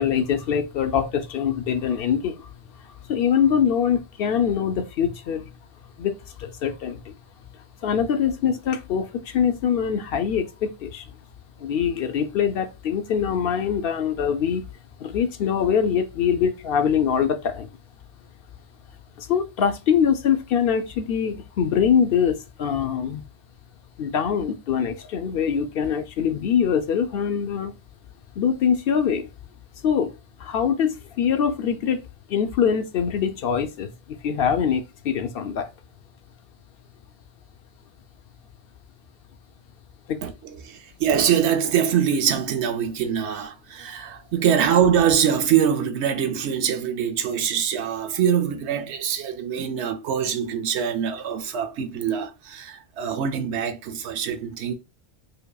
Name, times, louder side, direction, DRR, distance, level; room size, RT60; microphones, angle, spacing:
voice 1, 0.0-2.5 3.1-5.5 6.0-7.1 7.8-11.1 11.6-14.6 15.0-17.7 19.2-23.2 24.0-27.7 28.4-29.3 29.8-33.9 34.2-35.7 40.1-40.2, left 7 dB, 65° left, 0.7 m, -23 dB
voice 2, 40.2-54.7, right 8 dB, 85° right, 0.9 m, -23 dB
4.8 x 2.6 x 2.3 m
omnidirectional pair, 1.1 m